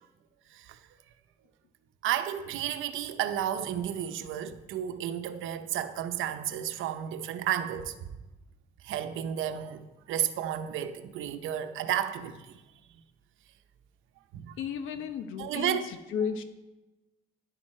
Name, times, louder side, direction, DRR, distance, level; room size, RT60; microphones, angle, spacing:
voice 1, 2.0-7.9 8.8-12.6 14.3-14.6 15.4-15.9, right 10 dB, 85° right, 0.8 m, -32 dB
voice 2, 14.6-15.8 16.1-16.4, left 7 dB, 90° left, 1.0 m, -33 dB
11.0 x 10.5 x 4.4 m
cardioid pair, 90°, 20 cm